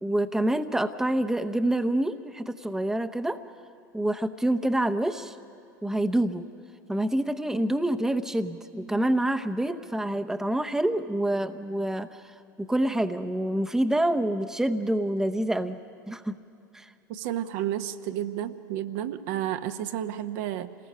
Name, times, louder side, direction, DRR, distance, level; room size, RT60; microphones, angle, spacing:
voice 1, 0.0-3.4 3.9-5.3 5.8-6.5 6.9-12.2 12.6-15.8 16.1-16.3 16.7-16.9, right 1 dB, 5° right, 8 dB, 0.8 m, -27 dB
voice 2, 17.1-20.8, right 11 dB, 60° right, 9 dB, 1.0 m, -31 dB
28.5 x 19.5 x 5.6 m, 2.4 s
hypercardioid pair, 85°, 11 cm